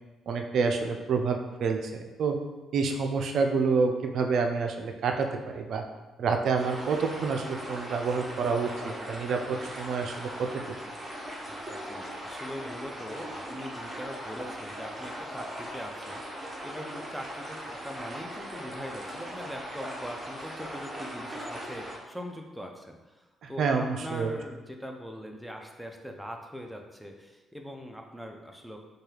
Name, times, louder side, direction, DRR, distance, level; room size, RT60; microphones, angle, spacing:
voice 1, 0.3-1.9 2.2-2.4 2.7-5.8 6.2-10.8 23.4-24.4, right 4 dB, 65° right, 4 dB, 0.4 m, -28 dB
sound 1, 6.6-22.0, equal, 20° right, 0.9 m, -39 dB
voice 2, 11.5-16.2 16.6-28.8, equal, ahead, 2 dB, 0.5 m, -42 dB
4.5 x 2.3 x 3.2 m, 1.1 s
cardioid pair, 90°, 0 cm